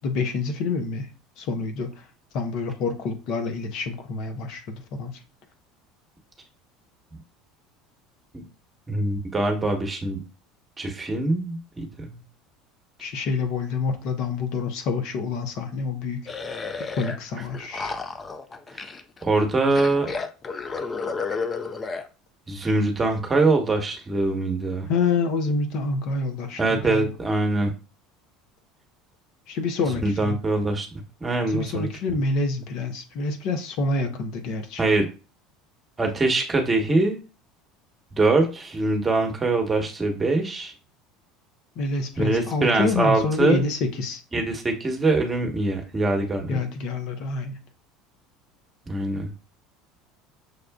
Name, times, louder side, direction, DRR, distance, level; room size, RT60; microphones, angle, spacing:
voice 1, 0.0-1.1 1.4-1.9 2.3-5.2 13.0-16.6 17.0-18.0 24.9-27.1 29.5-30.4 31.5-34.8 41.8-44.2 46.5-47.6, left 3 dB, 60° left, 6 dB, 0.8 m, -27 dB
voice 2, 8.9-10.2 10.8-12.2 17.3-17.4 19.2-20.1 22.5-24.9 26.6-27.7 30.0-30.9 31.2-31.9 34.8-35.1 36.0-37.2 38.1-40.7 42.2-43.6 44.3-46.6 48.9-49.3, right 2 dB, 20° right, 3 dB, 1.1 m, -23 dB
sound 1, 16.3-17.2 17.4-19.2 19.7-22.1, left 4 dB, 30° left, 0.5 m, -32 dB
6.5 x 2.4 x 2.3 m, 0.33 s
hypercardioid pair, 85°, 0 cm